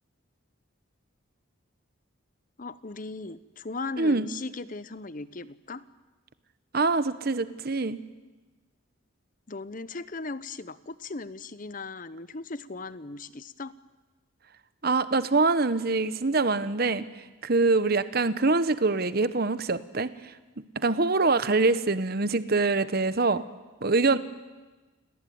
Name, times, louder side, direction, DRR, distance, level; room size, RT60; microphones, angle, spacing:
voice 1, 2.6-5.8 9.5-13.7, left 3 dB, 40° left, 16 dB, 0.8 m, -38 dB
voice 2, 6.7-8.0 14.8-17.0 17.4-20.1 20.8-23.5 23.8-24.2, right 3 dB, 50° right, 14 dB, 1.0 m, -24 dB
29.0 x 18.5 x 9.4 m, 1.2 s
head